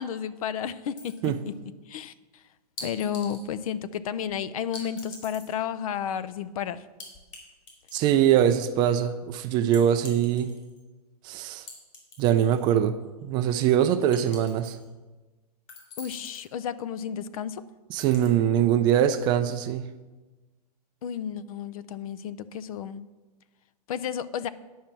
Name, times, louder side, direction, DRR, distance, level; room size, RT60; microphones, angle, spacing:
voice 1, 0.0-1.6 1.9-2.4 2.8-6.9 16.0-17.7 21.0-23.1 23.9-24.5, left 8 dB, 55° left, 16 dB, 0.6 m, -32 dB
sound 1, 1.0-1.5 2.8-3.5 4.7-5.6 7.0-7.4 7.7-8.5 9.7-10.8 11.7-12.7 13.0-13.1 14.1-14.9 15.7-16.5 18.0-18.3, left 2 dB, 35° left, 3.3 m, -44 dB
voice 2, 7.9-10.5 11.2-11.7 12.2-13.0 13.2-14.8 17.9-19.9, right 10 dB, 20° right, 10 dB, 0.3 m, -23 dB
10.5 x 5.5 x 7.3 m, 1.2 s
hypercardioid pair, 145°, 21 cm